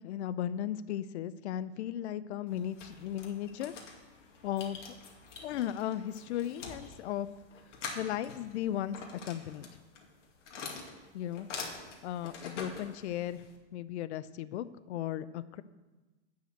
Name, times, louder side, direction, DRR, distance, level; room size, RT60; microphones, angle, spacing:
voice 1, 0.0-3.7 4.4-4.9 5.4-7.3 7.9-9.0 9.2-9.7 11.1-11.5 12.0-13.4 13.7-15.6, left 11 dB, 65° left, 15 dB, 0.6 m, -36 dB
sound 1, 2.5-13.6, left 4 dB, 85° left, 2.3 m, -46 dB
10.0 x 5.7 x 8.0 m, 1.2 s
supercardioid pair, 155°, 36 cm